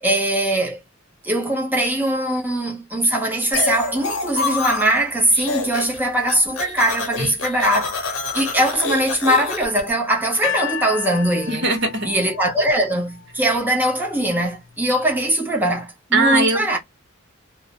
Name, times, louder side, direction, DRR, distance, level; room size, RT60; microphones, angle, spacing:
voice 1, 0.0-0.8 1.2-11.7 12.0-16.8, right 1 dB, 10° right, 0.6 m, -21 dB
sound 1, 3.5-5.0 5.3-6.0 6.2-9.8, left 4 dB, 80° left, 0.8 m, -27 dB
sound 2, 10.4-13.6 14.4-14.5, left 9 dB, 60° left, 0.4 m, -31 dB
voice 2, 11.5-12.1 16.1-16.8, right 2 dB, 60° right, 0.9 m, -20 dB
2.3 x 2.0 x 2.7 m
head